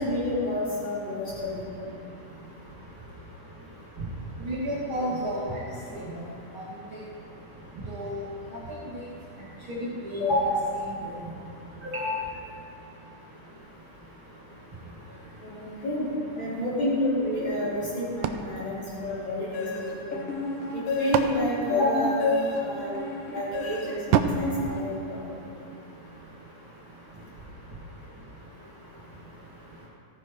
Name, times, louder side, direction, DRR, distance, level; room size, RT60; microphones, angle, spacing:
voice 1, 0.0-2.0 10.2-10.6 15.4-16.1 16.4-20.2 20.7-23.0 23.3-25.5, left 1 dB, 35° left, -9 dB, 4.6 m, -29 dB
voice 2, 4.4-5.6 5.9-6.2 6.5-6.6 7.9-8.2 8.9-9.0 9.7-9.9 10.1-10.2 11.8-12.1, equal, 45° right, -7 dB, 2.7 m, -31 dB
sound 1, 18.2-19.8 20.6-22.6 24.1-25.7, right 8 dB, 80° right, 2.0 m, -30 dB
sound 2, 19.5-25.4, left 2 dB, 85° left, 2.8 m, -31 dB
15.0 x 10.0 x 5.0 m, 2.3 s
omnidirectional pair, 3.6 m